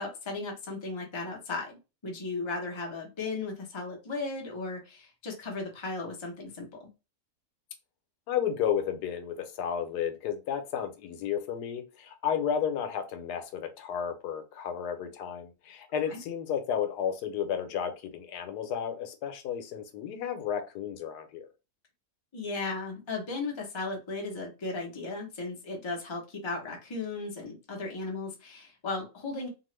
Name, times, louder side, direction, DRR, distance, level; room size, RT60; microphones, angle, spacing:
voice 1, 0.0-6.9 16.1-16.2 22.3-29.5, left 3 dB, 25° left, 1 dB, 0.6 m, -36 dB
voice 2, 8.3-21.5, left 8 dB, 85° left, 8 dB, 1.2 m, -32 dB
2.8 x 2.4 x 3.1 m, 0.28 s
omnidirectional pair, 1.7 m